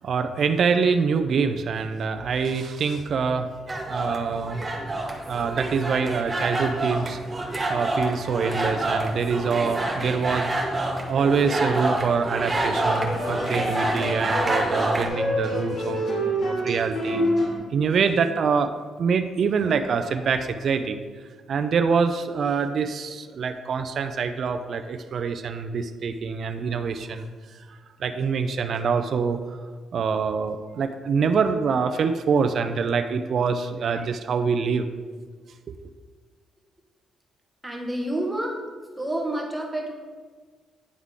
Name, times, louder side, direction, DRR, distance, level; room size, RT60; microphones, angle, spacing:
voice 1, 0.0-3.5 3.9-4.7 5.3-7.2 7.7-10.5 11.1-16.1 16.4-17.3 17.7-18.7 19.0-21.0 21.5-27.3 27.7-29.6 29.9-34.9 35.7-35.8, right 5 dB, 55° right, 8 dB, 0.4 m, -25 dB
sound 1, 3.7-15.1, right 2 dB, 25° right, 1.0 m, -27 dB
sound 2, 12.5-17.6, equal, 50° left, 2.1 m, -27 dB
voice 2, 37.6-38.6 39.0-39.9, right 1 dB, 10° right, 0 dB, 1.2 m, -28 dB
9.5 x 3.6 x 3.7 m, 1.5 s
cardioid pair, 90°, 0 cm